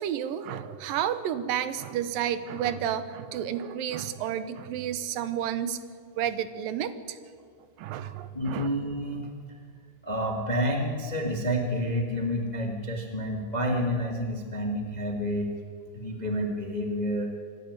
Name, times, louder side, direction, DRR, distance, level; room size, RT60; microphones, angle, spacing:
voice 1, 0.0-5.8 6.2-7.2 7.8-8.7, right 10 dB, 80° right, 12 dB, 2.7 m, -31 dB
voice 2, 8.3-9.6 10.0-15.5 15.9-17.3, equal, 20° left, 2 dB, 1.0 m, -29 dB
25.5 x 12.0 x 9.5 m, 2.1 s
omnidirectional pair, 4.0 m